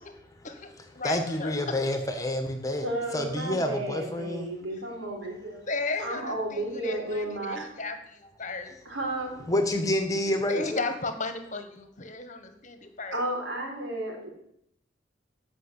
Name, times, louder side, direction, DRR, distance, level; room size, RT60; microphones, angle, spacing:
voice 1, 0.4-1.8 5.7-8.8 10.3-13.2, left 3 dB, 40° left, 8 dB, 1.4 m, -35 dB
voice 2, 1.0-2.9 3.1-4.5 9.5-10.8, left 1 dB, 20° left, 5 dB, 1.5 m, -28 dB
voice 3, 2.8-5.6 6.0-7.7 8.8-9.5 10.5-10.6 13.1-14.3, right 1 dB, 80° right, 1 dB, 4.0 m, -33 dB
14.5 x 6.1 x 8.2 m, 0.76 s
head